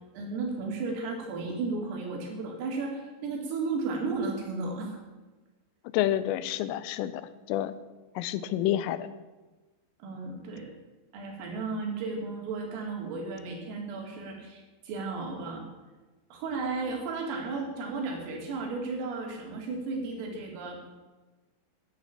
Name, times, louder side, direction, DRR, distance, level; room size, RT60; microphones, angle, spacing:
voice 1, 0.1-5.0 10.0-10.7 11.1-15.6 16.3-20.8, right 3 dB, 85° right, 1 dB, 5.4 m, -34 dB
voice 2, 5.9-7.2 7.5-7.7 8.2-9.1, left 12 dB, 85° left, 14 dB, 3.2 m, -28 dB
11.5 x 10.5 x 8.3 m, 1.2 s
omnidirectional pair, 5.8 m